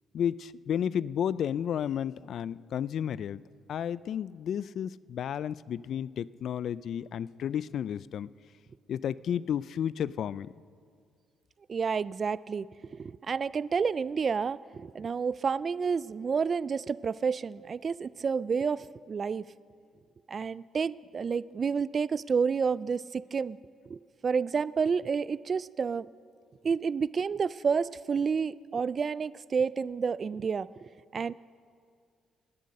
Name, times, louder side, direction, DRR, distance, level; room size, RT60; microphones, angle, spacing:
voice 1, 0.1-3.4 3.7-8.3 8.9-10.5, left 9 dB, 65° left, 19 dB, 0.3 m, -32 dB
voice 2, 11.7-12.7 12.9-19.4 20.3-23.6 23.9-26.1 26.6-30.7 31.1-31.3, right 5 dB, 45° right, 19 dB, 0.3 m, -30 dB
18.5 x 10.0 x 6.6 m, 2.1 s
cardioid pair, 90°, 0 cm